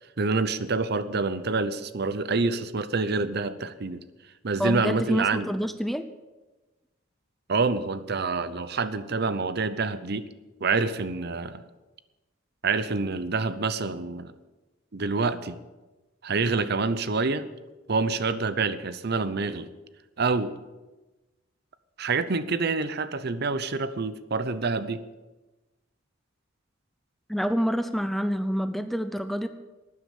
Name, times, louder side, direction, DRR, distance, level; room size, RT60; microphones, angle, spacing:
voice 1, 0.2-4.0 4.4-5.5 7.5-10.3 10.6-11.6 12.6-14.3 14.9-15.6 16.2-17.5 17.9-19.7 20.2-20.6 22.0-25.0, right 4 dB, 55° right, 13 dB, 0.7 m, -27 dB
voice 2, 4.6-6.0 27.3-29.5, equal, ahead, 10 dB, 0.6 m, -27 dB
12.5 x 9.6 x 8.5 m, 1.1 s
head